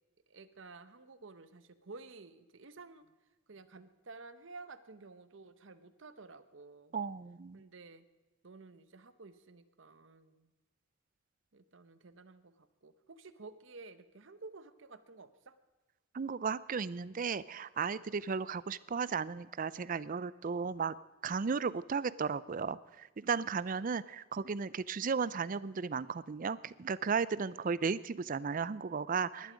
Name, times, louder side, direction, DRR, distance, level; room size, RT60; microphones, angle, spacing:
voice 1, 0.3-3.1 3.5-7.0 7.5-8.0 8.4-10.5 11.5-15.6 23.8-24.0 27.4-27.6 29.4-29.5, right 3 dB, 65° right, 13 dB, 0.9 m, -53 dB
voice 2, 6.9-7.6 16.1-21.0 21.2-29.5, right 5 dB, 40° right, 18 dB, 0.4 m, -35 dB
19.5 x 12.0 x 5.1 m, 1.2 s
head